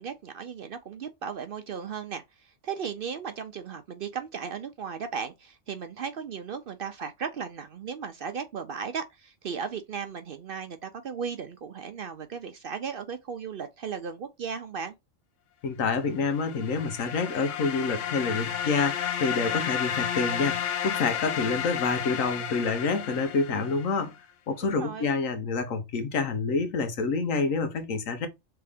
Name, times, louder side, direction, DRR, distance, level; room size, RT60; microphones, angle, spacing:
voice 1, 0.0-14.9 24.6-25.1, right 6 dB, 60° right, 0.6 m, -36 dB
voice 2, 15.6-24.1 24.5-28.3, left 4 dB, 85° left, 1.3 m, -28 dB
sound 1, 16.2-24.0, left 9 dB, 70° left, 1.0 m, -32 dB
3.4 x 3.3 x 3.4 m
omnidirectional pair, 1.3 m